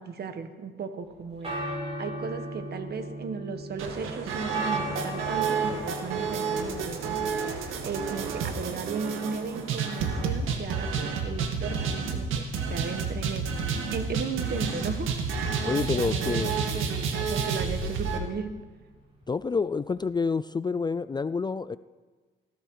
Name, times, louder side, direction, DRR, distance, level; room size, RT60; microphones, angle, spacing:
voice 1, 0.0-13.4 13.9-15.1 15.4-18.5, right 5 dB, 55° right, 9 dB, 1.6 m, -36 dB
sound 1, 1.1-20.1, right 1 dB, 30° right, 6.2 m, -40 dB
sound 2, 3.8-18.2, right 5 dB, 85° right, 1.9 m, -30 dB
voice 2, 15.6-16.5 19.3-21.8, left 4 dB, 20° left, 15 dB, 0.4 m, -28 dB
19.5 x 15.5 x 4.8 m, 1.4 s
cardioid pair, 90°, 20 cm